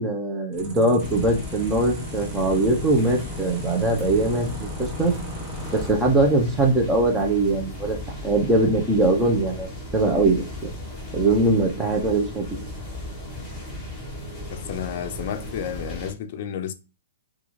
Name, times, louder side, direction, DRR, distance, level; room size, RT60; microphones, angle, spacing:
voice 1, 0.0-5.1 5.7-8.0 8.2-10.7 11.1-12.4, right 2 dB, 10° right, 0.7 m, -21 dB
sound 1, 0.5-5.9, equal, 35° right, 1.2 m, -37 dB
sound 2, 1.0-16.1, left 1 dB, 10° left, 1.1 m, -36 dB
voice 2, 14.5-16.7, left 9 dB, 45° left, 0.5 m, -31 dB
3.7 x 2.4 x 3.1 m
hypercardioid pair, 160°, 0 cm